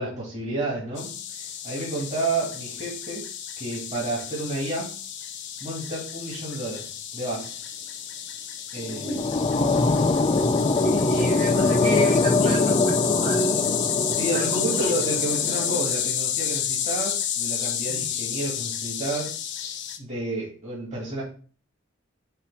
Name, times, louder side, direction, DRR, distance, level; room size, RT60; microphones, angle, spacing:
voice 1, 0.0-3.3 3.6-4.9 5.6-7.6 8.7-9.2 11.1-11.4 14.2-19.4 20.0-21.2, right 2 dB, 35° right, -5 dB, 2.1 m, -31 dB
sound 1, 1.0-20.0, left 9 dB, 60° left, 0.7 m, -31 dB
sound 2, 8.8-15.9, left 3 dB, 30° left, 0.4 m, -23 dB
voice 2, 10.8-13.7 14.3-14.9 15.6-15.7 17.9-18.0, right 1 dB, 60° right, -5 dB, 2.8 m, -32 dB
5.6 x 3.0 x 5.5 m, 0.42 s
head